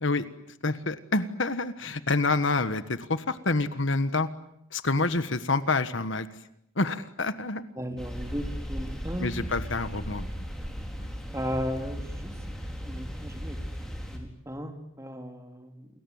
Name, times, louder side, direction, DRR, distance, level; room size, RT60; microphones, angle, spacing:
voice 1, 0.6-4.3 4.7-6.3 6.8-7.6 9.2-10.4, left 3 dB, 60° left, 12 dB, 1.4 m, -27 dB
voice 2, 7.8-9.5 10.2-10.3 11.3-12.4 12.8-13.6 13.9-15.9, equal, 15° right, 5 dB, 3.2 m, -36 dB
sound 1, 8.0-14.2, equal, ahead, 4.4 m, -36 dB
29.0 x 21.0 x 9.5 m, 0.75 s
head